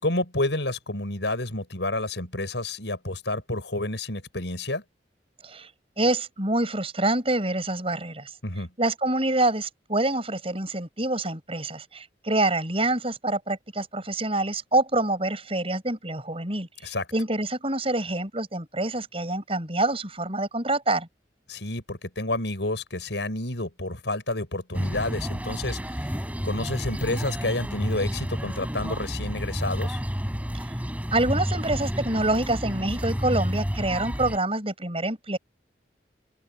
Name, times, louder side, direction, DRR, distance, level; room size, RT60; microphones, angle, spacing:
voice 1, 0.0-4.8 8.4-8.7 16.8-17.1 21.5-30.0, left 2 dB, 80° left, 6.3 m, -30 dB
voice 2, 6.0-8.3 8.8-21.1 31.1-35.4, right 2 dB, 35° right, 7.6 m, -26 dB
sound 1, 24.7-34.4, equal, 10° right, 6.3 m, -30 dB
open air
head